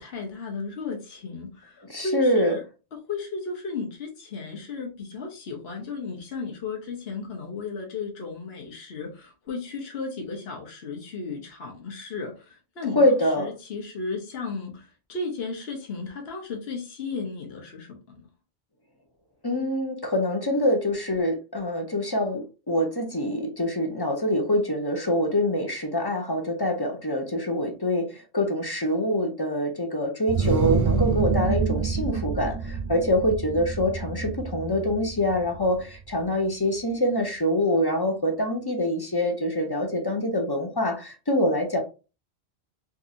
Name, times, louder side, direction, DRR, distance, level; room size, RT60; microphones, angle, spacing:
voice 1, 0.0-2.6 2.9-18.3, left 4 dB, 70° left, 1.2 m, -35 dB
voice 2, 1.9-2.6 13.0-13.5 19.4-41.8, left 1 dB, 25° left, 0.6 m, -25 dB
sound 1, 30.3-35.8, right 5 dB, 50° right, 0.4 m, -27 dB
3.6 x 2.8 x 2.6 m
omnidirectional pair, 1.1 m